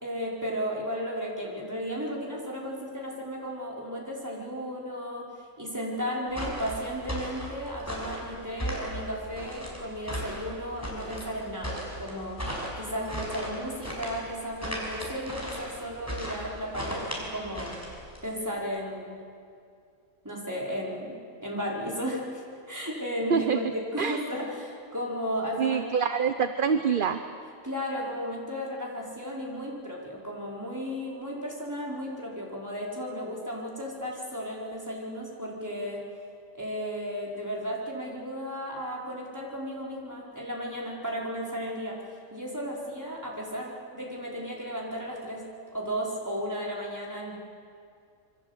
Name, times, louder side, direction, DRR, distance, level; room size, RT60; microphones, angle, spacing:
voice 1, 0.0-12.5 12.7-17.8 18.2-19.2 20.2-26.3 26.7-26.8 27.6-36.1 36.6-45.5 45.7-47.4, equal, 15° right, -3 dB, 4.7 m, -34 dB
sound 1, 6.3-18.3, equal, 10° left, 5.9 m, -36 dB
voice 2, 25.6-27.2, right 6 dB, 45° right, 9 dB, 0.9 m, -25 dB
27.5 x 23.5 x 8.2 m, 2.4 s
omnidirectional pair, 1.4 m